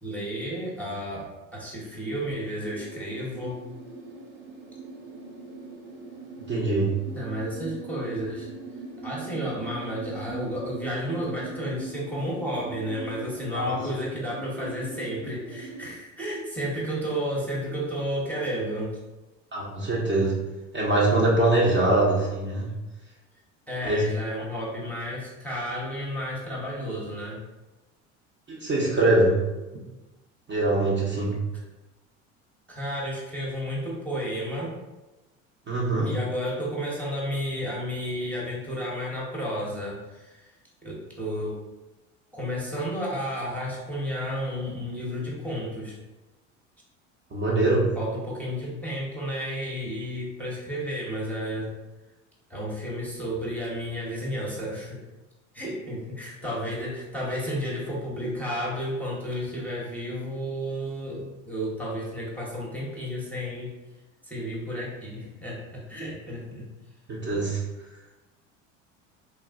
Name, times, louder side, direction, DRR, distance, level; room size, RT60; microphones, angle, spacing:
voice 1, 0.0-3.6 7.1-8.5 9.0-19.0 23.7-27.4 31.5-31.6 32.7-34.7 36.0-40.5 40.8-41.6 42.3-46.0 48.0-51.7 52.5-55.0 55.5-63.7 64.2-66.7, equal, 5° left, -5 dB, 0.8 m, -32 dB
sound 1, 2.6-15.9, right 3 dB, 85° right, 0.8 m, -41 dB
voice 2, 6.5-6.9 13.5-13.8 19.5-20.4 20.7-22.7 23.8-24.0 28.5-29.4 30.5-31.4 35.7-36.1 47.3-47.9 67.1-67.6, right 2 dB, 30° right, -5 dB, 0.7 m, -23 dB
3.0 x 2.4 x 2.4 m, 1.1 s
hypercardioid pair, 75°, 38 cm